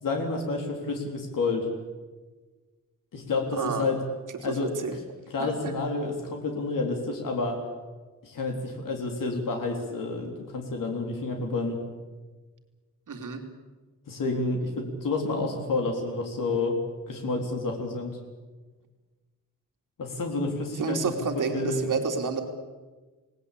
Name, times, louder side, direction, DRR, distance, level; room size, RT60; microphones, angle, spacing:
voice 1, 0.0-1.7 3.1-4.0 4.4-5.0 5.3-7.6 8.2-11.8 14.1-16.8 17.1-18.2 20.0-21.9, left 3 dB, 90° left, 2 dB, 3.7 m, -29 dB
voice 2, 3.5-3.8 4.4-5.0 5.4-5.7 13.1-13.4 20.8-22.4, right 5 dB, 75° right, 4 dB, 3.3 m, -30 dB
28.0 x 19.0 x 8.5 m, 1.3 s
wide cardioid pair, 165°, 32 cm